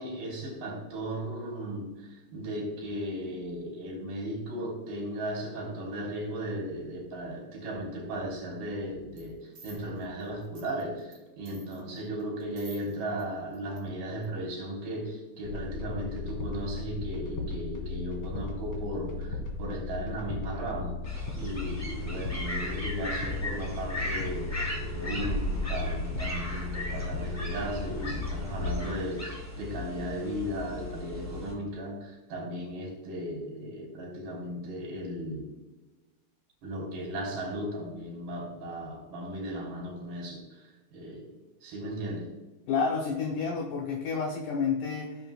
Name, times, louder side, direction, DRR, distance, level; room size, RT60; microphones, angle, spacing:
voice 1, 0.0-35.5 36.6-41.3 41.6-42.3, equal, 85° right, -1 dB, 5.0 m, -36 dB
sound 1, 9.2-9.3 9.6-11.2 11.5-13.2 13.5-13.8 14.2-14.3, right 4 dB, 35° right, 2.7 m, -52 dB
sound 2, 15.4-28.8, left 3 dB, 45° left, 2.5 m, -36 dB
sound 3, 21.0-31.5, left 1 dB, 15° left, 0.5 m, -36 dB
voice 2, 42.7-45.3, left 5 dB, 70° left, 0 dB, 2.2 m, -30 dB
16.5 x 7.6 x 2.4 m, 1.1 s
omnidirectional pair, 4.3 m